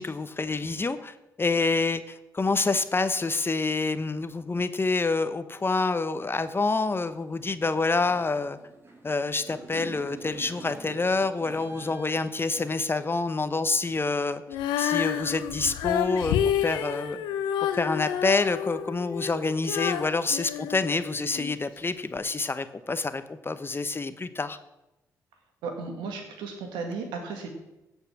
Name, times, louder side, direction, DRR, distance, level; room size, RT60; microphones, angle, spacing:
voice 1, 0.0-8.6 9.0-14.4 14.8-17.2 17.7-24.6, left 3 dB, 30° left, 12 dB, 0.9 m, -27 dB
sound 1, 6.4-6.5 7.3-7.6 7.9-13.0, right 2 dB, 30° right, 2.8 m, -46 dB
Female singing, 14.5-21.5 22.2-22.3, left 10 dB, 80° left, 0.7 m, -29 dB
voice 2, 25.6-27.5, right 4 dB, 80° right, 4 dB, 1.9 m, -35 dB
16.0 x 5.6 x 6.0 m, 0.96 s
hypercardioid pair, 45°, 8 cm